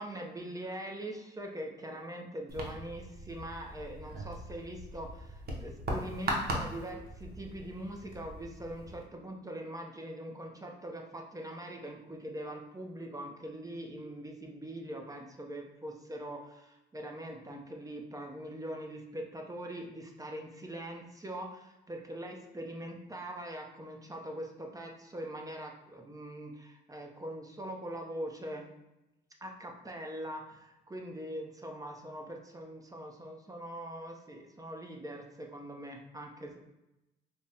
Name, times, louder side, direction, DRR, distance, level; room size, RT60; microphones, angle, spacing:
voice 1, 0.0-28.7 29.4-36.6, right 1 dB, 15° right, 1 dB, 0.6 m, -42 dB
sound 1, 2.5-9.0, right 1 dB, 50° right, 0.8 m, -39 dB
5.0 x 2.0 x 2.8 m, 0.93 s
cardioid pair, 90°, 20 cm